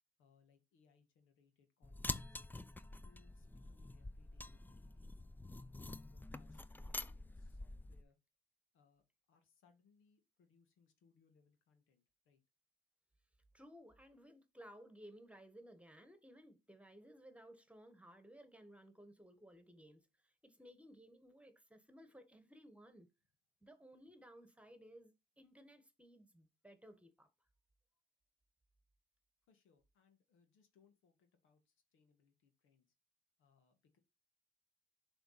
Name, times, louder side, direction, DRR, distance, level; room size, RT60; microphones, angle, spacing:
voice 1, 0.2-2.4 3.0-5.1 5.6-8.2 8.7-9.0 9.3-12.4 29.5-32.9 33.4-34.0, left 5 dB, 85° left, 1.8 m, -73 dB
sound 1, 1.8-8.0, left 2 dB, 10° left, 0.5 m, -47 dB
voice 2, 13.5-23.1 23.6-27.3, equal, 5° right, 1.4 m, -59 dB
7.0 x 3.6 x 5.7 m
cardioid pair, 90°, 20 cm